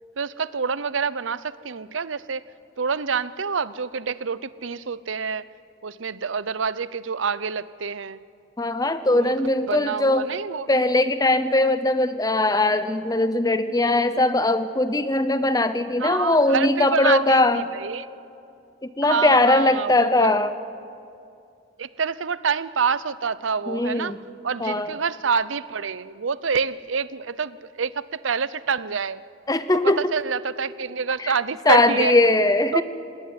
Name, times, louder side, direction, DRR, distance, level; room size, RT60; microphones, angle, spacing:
voice 1, 0.2-2.4 2.8-5.5 5.8-8.2 9.1-9.3 9.7-10.7 13.9-14.0 16.0-18.1 19.0-20.3 21.8-24.1 24.4-29.2 29.7-32.2 32.7-32.8, right 5 dB, 85° right, 17 dB, 0.7 m, -27 dB
voice 2, 8.6-10.3 10.7-17.7 18.8-20.5 23.7-24.2 24.6-24.9 29.5-30.1 31.2-31.3 31.7-32.8, left 2 dB, 20° left, 12 dB, 0.8 m, -20 dB
27.0 x 19.0 x 9.7 m, 2.5 s
head